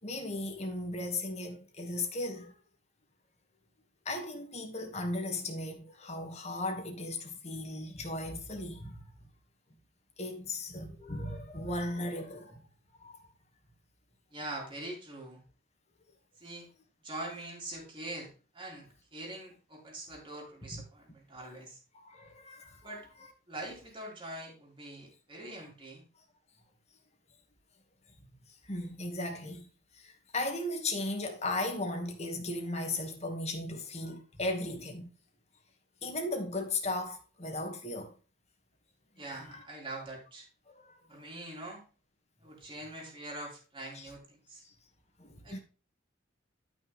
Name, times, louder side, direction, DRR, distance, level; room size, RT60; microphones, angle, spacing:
voice 1, 0.0-2.5 4.1-9.0 10.2-12.6 13.0-13.2 20.7-20.8 21.9-22.9 28.7-35.1 36.0-38.1 39.5-39.6 40.7-41.0 43.9-44.1 44.6-44.7 45.2-45.6, left 2 dB, 30° left, 2.2 m, -36 dB
voice 2, 14.3-15.4 16.4-16.7 17.0-21.8 22.8-23.1 23.5-26.0 39.2-40.5 41.1-41.8 42.4-44.6 45.4-45.6, right 1 dB, 25° right, 3.5 m, -43 dB
12.5 x 6.2 x 3.6 m
head